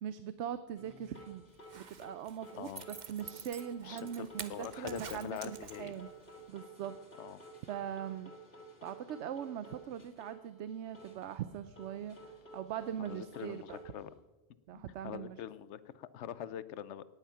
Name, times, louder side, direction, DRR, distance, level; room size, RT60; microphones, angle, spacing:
voice 1, 0.0-1.4 1.8-6.1 6.5-7.2 7.7-8.3 8.8-13.8 14.7-15.4, right 9 dB, 85° right, 13 dB, 0.9 m, -41 dB
sound 1, 0.8-10.4 10.7-11.4 11.8-14.1, right 1 dB, 65° left, 2.2 m, -53 dB
Zipper (clothing), 1.5-6.1 6.5-6.6, right 6 dB, 45° right, 0.9 m, -48 dB
voice 2, 3.8-5.9 7.2-7.4 13.0-14.1 14.7-17.0, left 10 dB, 90° left, 16 dB, 0.9 m, -44 dB
18.0 x 9.3 x 5.6 m, 1.2 s
omnidirectional pair, 1.1 m